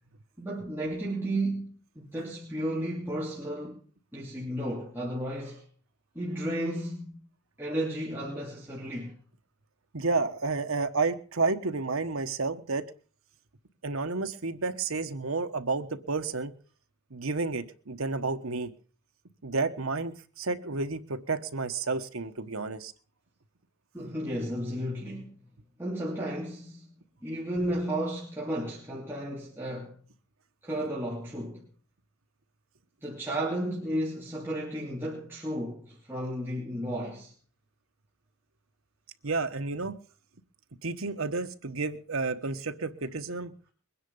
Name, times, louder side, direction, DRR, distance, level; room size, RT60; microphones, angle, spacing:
voice 1, 0.4-3.8 4.1-5.6 6.1-7.2 7.6-9.2 23.9-25.4 25.8-26.9 27.2-30.0 30.6-31.6 33.0-37.3, right 1 dB, 10° right, 2.8 m, -33 dB
voice 2, 9.9-12.9 13.8-16.5 17.1-18.7 19.4-22.9 39.2-39.9 40.8-43.5, right 3 dB, 90° right, 1.3 m, -31 dB
22.0 x 10.0 x 5.5 m
head